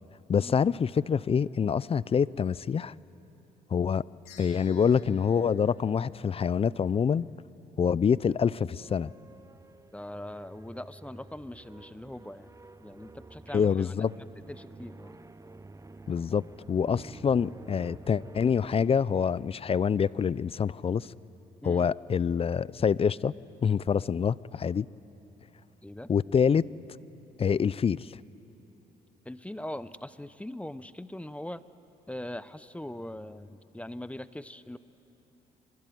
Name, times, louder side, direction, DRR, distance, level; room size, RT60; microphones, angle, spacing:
voice 1, 0.3-2.9 3.7-4.0 4.4-7.3 7.8-9.1 13.5-14.1 16.1-16.4 16.7-21.1 21.6-23.3 23.6-24.9 26.1-26.6 27.4-28.1, left 7 dB, 35° left, 21 dB, 0.5 m, -26 dB
sound 1, 4.3-6.7, left 5 dB, 90° left, 3.4 m, -56 dB
sound 2, 8.7-18.9, right 2 dB, 20° right, 0.8 m, -50 dB
voice 2, 9.9-12.5 12.8-15.2 21.6-21.9 25.8-26.1 29.2-31.6 32.1-34.8, left 1 dB, 10° left, 15 dB, 0.8 m, -41 dB
25.0 x 21.0 x 9.4 m, 2.9 s
supercardioid pair, 65°, 16 cm